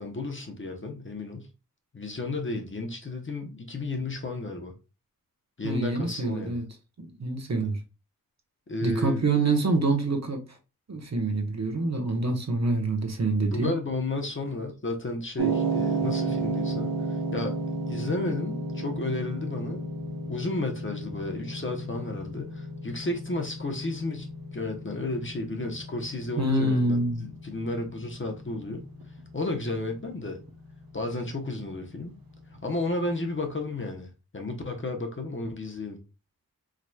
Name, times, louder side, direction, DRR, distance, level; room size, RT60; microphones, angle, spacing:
voice 1, 0.0-1.5 1.9-4.7 5.6-6.6 7.5-7.7 8.7-9.2 13.5-17.6 17.9-19.8 20.3-28.9 29.3-30.4 30.9-32.1 32.6-34.1 34.3-36.0, left 2 dB, 35° left, 1.0 m, -33 dB
voice 2, 5.6-6.6 7.0-7.8 8.8-10.4 10.9-13.7 26.4-27.2, right 2 dB, 50° right, 1.1 m, -26 dB
sound 1, 15.4-33.6, right 3 dB, 75° right, 1.0 m, -34 dB
4.8 x 3.0 x 2.3 m
cardioid pair, 55°, 35 cm